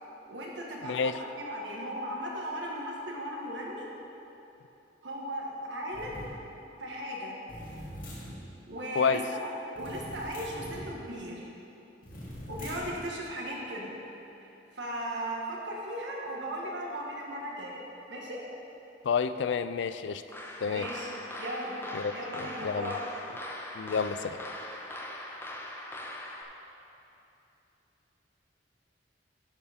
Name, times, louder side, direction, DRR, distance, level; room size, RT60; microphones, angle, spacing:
voice 1, 0.3-3.9 5.0-6.3 6.8-7.4 8.7-9.5 9.8-11.5 12.5-13.9 14.7-18.4 20.6-21.1 21.4-21.8 22.1-23.0, equal, 85° right, -2 dB, 1.5 m, -37 dB
voice 2, 0.8-1.2 9.0-9.2 19.0-20.2 20.6-20.9 21.9-22.9 23.8-24.4, left 6 dB, 80° left, 12 dB, 0.4 m, -29 dB
sound 1, 5.9-6.3 7.5-8.4 9.7-10.9 12.0-13.0, equal, 50° left, 2.2 m, -42 dB
sound 2, 20.3-26.4, left 1 dB, 15° left, 0.6 m, -41 dB
12.0 x 4.7 x 5.1 m, 3.0 s
head